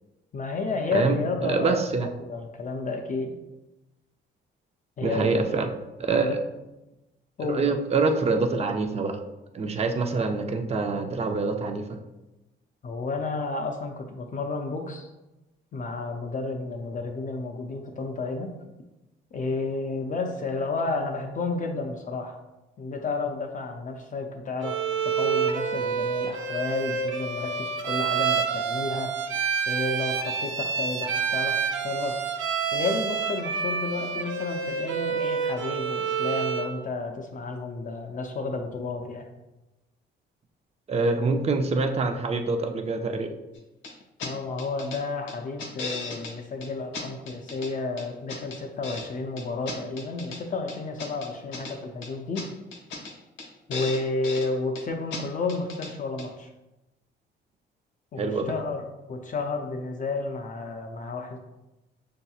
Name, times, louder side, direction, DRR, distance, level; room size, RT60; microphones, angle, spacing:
voice 1, 0.3-3.3 5.0-5.3 6.2-6.3 7.4-7.7 12.8-15.1 15.7-18.5 19.3-22.4 22.8-29.1 29.7-32.2 32.7-39.3 44.2-52.5 53.7-56.5 58.1-61.4, left 3 dB, 40° left, 3 dB, 0.5 m, -31 dB
voice 2, 0.9-2.1 5.0-5.7 6.0-6.4 7.4-9.2 9.5-11.8 40.9-43.3 58.2-58.5, right 3 dB, 30° right, 6 dB, 0.5 m, -25 dB
Bowed string instrument, 24.6-36.8, right 6 dB, 75° right, 0.6 m, -28 dB
sound 1, 43.8-43.9 44.2-44.3 44.6-45.0 45.3-46.3 46.6-46.7 46.9-47.7 48.0-49.1 49.4-50.4 50.7-51.7 52.0-52.1 52.3-52.5 52.7-53.1 53.4-53.5 53.7-54.5 54.7-54.8 55.1-55.2 55.5-55.9 56.2-56.3, left 3 dB, 80° left, 0.9 m, -36 dB
6.4 x 2.7 x 2.3 m, 1.0 s
cardioid pair, 90°, 20 cm